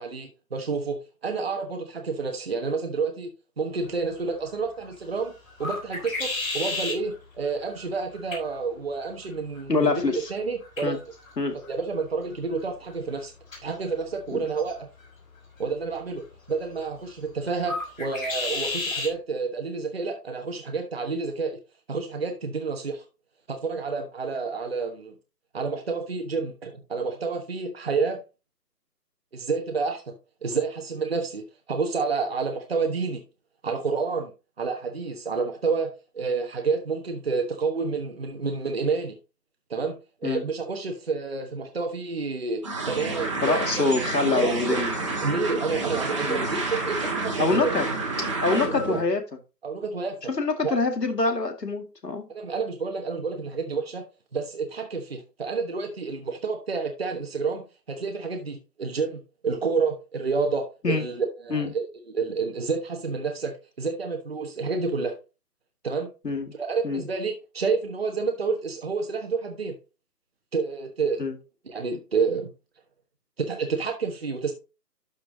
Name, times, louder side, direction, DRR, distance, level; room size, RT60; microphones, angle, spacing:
voice 1, 0.0-3.3 3.6-5.3 5.6-11.0 11.7-13.3 13.6-14.9 15.6-21.6 21.9-23.0 23.5-25.1 25.5-28.2 29.3-30.1 30.4-31.4 31.7-33.2 33.6-34.3 34.6-39.2 39.7-40.0 40.2-43.8 44.2-44.8 45.2-47.7 48.5-49.0 49.6-50.2 50.6-50.7 52.3-54.0 54.3-65.2 65.8-66.1 66.6-69.7 70.5-71.2 71.6-72.5 73.4-74.5, right 4 dB, 40° right, 1.2 m, -29 dB
sound 1, 3.8-19.2, left 3 dB, 55° left, 3.7 m, -37 dB
voice 2, 9.7-10.3 10.8-11.0 11.4-11.6 14.3-14.4 40.2-40.5 43.4-44.9 46.3-46.5 47.4-47.9 48.4-49.2 50.3-52.2 60.8-61.1 61.5-61.7 66.2-66.5 66.8-67.0 71.2-71.3, left 3 dB, 80° left, 2.1 m, -25 dB
sound 2, 42.6-49.0, right 3 dB, 20° right, 1.5 m, -29 dB
12.0 x 5.5 x 2.7 m
figure-of-eight pair, 165°, 49 cm